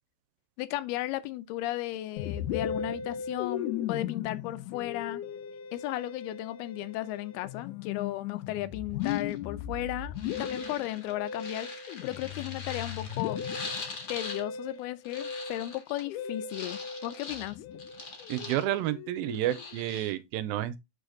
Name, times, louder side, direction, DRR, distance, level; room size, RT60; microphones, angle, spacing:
voice 1, 0.6-5.2 5.7-13.4 14.1-17.6, left 15 dB, 90° left, 2.7 m, -35 dB
Musical instrument, 2.2-19.8, left 8 dB, 75° left, 1.9 m, -37 dB
sound 1, 9.0-9.4 10.2-14.4 14.7-16.0 16.5-18.9 19.2-20.1, left 4 dB, 40° left, 1.4 m, -42 dB
voice 2, 18.3-20.8, right 14 dB, 85° right, 2.4 m, -30 dB
6.8 x 5.0 x 3.9 m
omnidirectional pair, 4.4 m